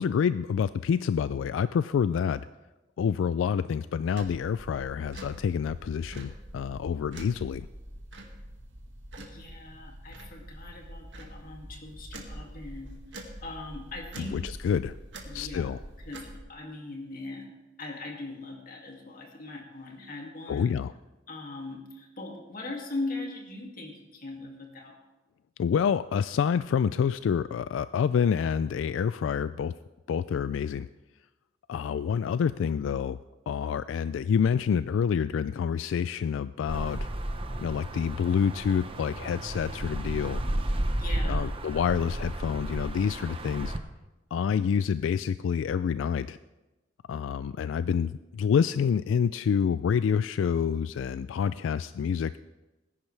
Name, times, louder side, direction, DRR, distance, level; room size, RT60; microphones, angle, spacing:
voice 1, 0.0-2.5 3.0-7.7 14.2-15.0 15.3-15.8 20.5-20.9 25.6-29.7 30.1-30.9 31.7-33.2 33.5-37.1 37.6-40.4 41.3-43.7 44.3-46.4 47.1-52.3, left 7 dB, 85° left, 15 dB, 0.3 m, -27 dB
sound 1, 4.1-16.4, right 1 dB, 70° right, 2.0 m, -45 dB
voice 2, 9.2-14.4 15.2-15.8 16.0-20.7 21.3-25.0 41.0-41.5, left 2 dB, 50° left, 1 dB, 2.3 m, -40 dB
sound 2, 36.7-43.8, right 1 dB, 30° right, 0.9 m, -33 dB
19.5 x 10.5 x 3.3 m, 1.1 s
head